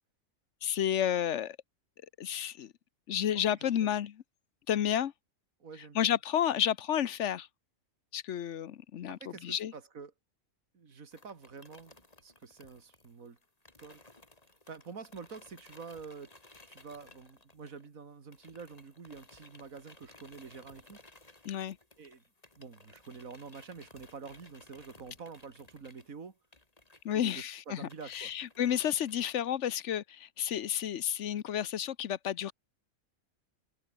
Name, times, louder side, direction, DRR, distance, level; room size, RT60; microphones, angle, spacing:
voice 1, 0.6-1.6 2.2-2.7 3.1-4.2 4.7-5.1 5.9-7.5 8.1-9.7 21.4-21.8 27.0-32.5, left 10 dB, 65° left, 1.0 m, -31 dB
voice 2, 3.3-3.9 5.6-6.1 9.1-10.1 10.7-13.4 13.8-14.0 14.7-16.3 16.7-21.0 22.0-22.2 22.6-26.4 27.1-28.3, right 5 dB, 80° right, 2.6 m, -47 dB
sound 1, 11.1-18.0 18.3-29.2, left 2 dB, 25° left, 2.8 m, -58 dB
omnidirectional pair, 1.4 m